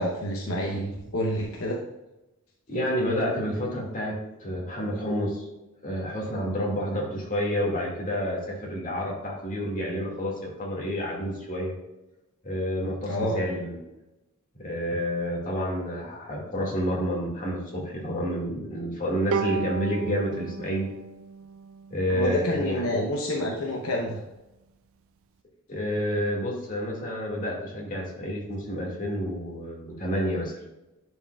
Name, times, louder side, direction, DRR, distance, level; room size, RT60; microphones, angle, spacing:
voice 1, 0.0-1.8 13.1-13.4 22.1-24.2, equal, 70° left, 0 dB, 0.8 m, -28 dB
voice 2, 2.7-4.2 4.4-5.4 5.8-11.7 12.4-13.8 14.6-20.9 21.9-22.9 25.7-30.6, equal, 40° left, -3 dB, 2.0 m, -29 dB
Bowed string instrument, 19.3-22.6, right 5 dB, 70° right, 0.4 m, -33 dB
10.5 x 4.6 x 2.3 m, 0.98 s
head